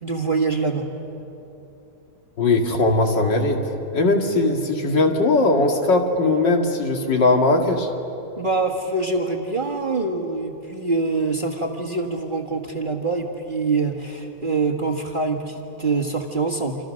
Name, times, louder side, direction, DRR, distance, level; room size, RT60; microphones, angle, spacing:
voice 1, 0.0-0.8 8.4-16.8, right 3 dB, 25° right, 0 dB, 1.7 m, -24 dB
voice 2, 2.4-3.6 3.9-7.9, left 2 dB, 60° left, 3 dB, 2.9 m, -19 dB
27.5 x 27.0 x 6.4 m, 2.9 s
omnidirectional pair, 2.2 m